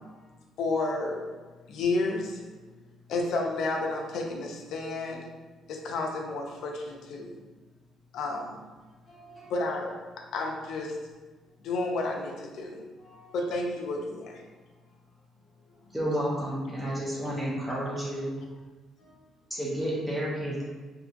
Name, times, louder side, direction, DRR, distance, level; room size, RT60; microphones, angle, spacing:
voice 1, 0.6-1.3 1.7-2.4 3.1-5.2 5.7-7.3 8.1-8.6 9.5-10.0 10.3-11.0 11.6-12.8 13.3-14.4, left 2 dB, 60° left, 1 dB, 0.4 m, -31 dB
voice 2, 9.1-9.5 13.0-13.5 15.6-16.2 19.0-19.7, right 1 dB, 25° left, -8 dB, 1.0 m, -56 dB
voice 3, 15.9-18.3 19.5-20.6, equal, ahead, -8 dB, 0.6 m, -31 dB
2.7 x 2.5 x 2.5 m, 1.3 s
cardioid pair, 170°, 0 cm